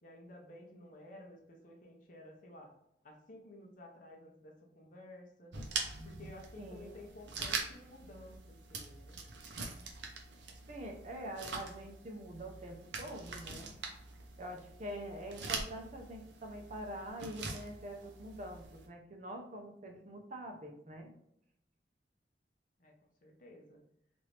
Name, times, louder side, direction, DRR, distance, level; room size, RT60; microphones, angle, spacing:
voice 1, 0.0-2.7 3.0-5.6 6.0-9.2 22.8-22.9 23.2-23.8, left 1 dB, 50° left, 1 dB, 0.7 m, -54 dB
sound 1, 5.5-18.9, right 4 dB, 90° right, 0.6 m, -44 dB
voice 2, 6.6-6.9 10.7-13.7 14.4-21.1, right 1 dB, 40° right, 3 dB, 0.5 m, -45 dB
3.1 x 2.5 x 3.1 m, 0.78 s
head